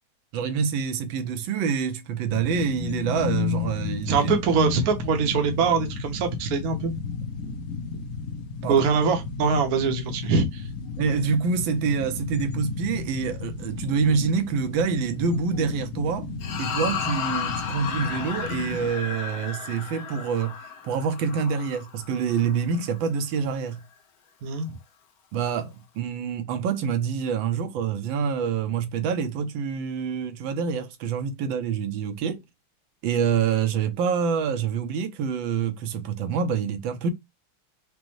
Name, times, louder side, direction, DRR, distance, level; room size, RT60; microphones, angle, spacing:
voice 1, 0.3-4.3 8.6-8.8 11.0-16.3 16.6-20.6 20.8-23.8 25.3-32.4 33.0-37.1, right 6 dB, 75° right, 1.4 m, -26 dB
sound 1, 2.3-18.9, left 5 dB, 80° left, 0.8 m, -33 dB
voice 2, 4.1-6.9 8.7-10.6 24.4-24.7, right 5 dB, 60° right, 1.1 m, -23 dB
sound 2, 16.4-22.9, left 7 dB, 60° left, 1.0 m, -34 dB
5.2 x 2.1 x 3.0 m
omnidirectional pair, 2.2 m